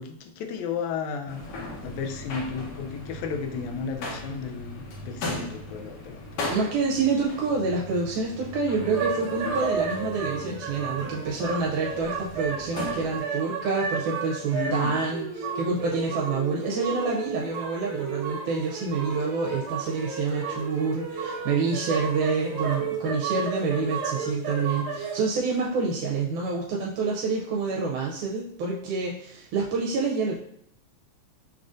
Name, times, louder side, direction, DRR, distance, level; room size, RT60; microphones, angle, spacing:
voice 1, 0.0-1.4 1.8-6.5 14.5-15.0, left 5 dB, 80° left, 5 dB, 1.7 m, -33 dB
sound 1, 1.2-13.2, left 2 dB, 65° left, 1.7 m, -38 dB
voice 2, 6.5-30.4, right 4 dB, 85° right, -2 dB, 2.0 m, -27 dB
sound 2, 8.8-25.2, right 5 dB, 65° right, 1.9 m, -32 dB
5.9 x 2.4 x 2.5 m, 0.68 s
omnidirectional pair, 3.5 m